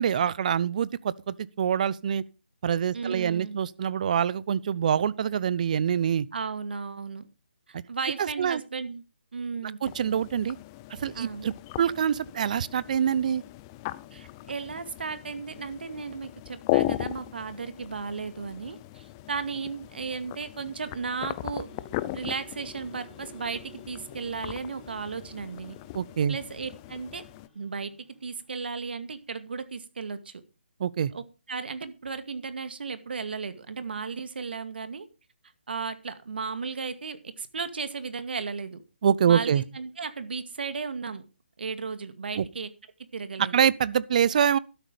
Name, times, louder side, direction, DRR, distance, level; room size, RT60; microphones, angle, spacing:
voice 1, 0.0-2.2 2.6-6.3 7.7-7.8 8.2-8.6 9.8-10.6 10.9-13.4 25.9-26.4 30.8-31.1 39.0-39.6 42.4-42.5 43.5-44.6, right 8 dB, 45° right, 0.7 m, -25 dB
voice 2, 2.9-3.6 6.3-7.3 7.7-9.0 9.3-10.2 11.1-11.5 14.1-21.7 22.1-25.8 26.3-27.2 27.5-27.9 28.2-30.4 31.1-31.2 31.5-35.1 35.7-38.8 39.3-41.3 41.6-42.7 43.1-43.6, right 5 dB, 65° right, 2.1 m, -35 dB
sound 1, 9.8-27.5, left 16 dB, 20° left, 0.6 m, -37 dB
sound 2, 21.6-28.8, equal, 5° left, 4.1 m, -55 dB
12.5 x 10.0 x 5.1 m
figure-of-eight pair, 150°, 6 cm